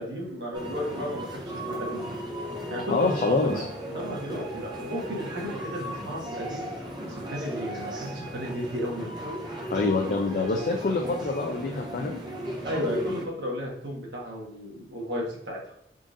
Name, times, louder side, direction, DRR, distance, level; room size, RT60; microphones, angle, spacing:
voice 1, 0.0-2.0 2.7-9.1 12.6-15.6, equal, 75° right, -2 dB, 1.2 m, -34 dB
sound 1, 0.5-13.2, equal, 25° right, 0.5 m, -36 dB
voice 2, 2.9-3.6 9.7-12.2, left 3 dB, 50° left, 1 dB, 0.4 m, -26 dB
3.8 x 2.5 x 3.7 m, 0.75 s
head